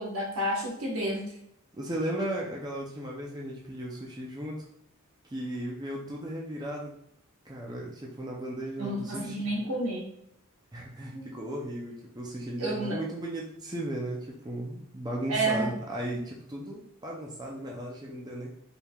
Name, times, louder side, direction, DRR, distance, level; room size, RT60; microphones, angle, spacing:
voice 1, 0.0-1.3 8.8-10.1 11.1-11.3 12.6-13.0 15.3-15.7, right 1 dB, 70° right, -2 dB, 1.1 m, -30 dB
voice 2, 1.7-4.7 5.3-6.9 7.4-9.5 10.7-18.5, right 1 dB, 20° right, -2 dB, 0.5 m, -36 dB
4.4 x 3.5 x 2.3 m, 0.73 s
head